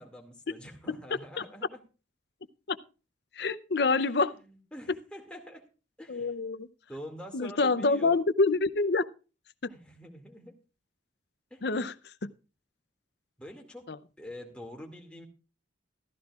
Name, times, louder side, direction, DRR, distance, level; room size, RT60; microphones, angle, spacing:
voice 1, 0.0-1.8 4.0-4.3 4.7-5.7 6.0-6.3 6.9-8.2 9.7-10.6 11.5-11.6 13.4-15.3, equal, 5° left, 1 dB, 2.2 m, -46 dB
voice 2, 3.3-4.3 6.1-6.7 7.3-9.0 9.6-9.7 11.6-12.3 13.9-14.0, left 3 dB, 60° left, 13 dB, 0.6 m, -27 dB
15.0 x 14.0 x 2.4 m, 0.34 s
head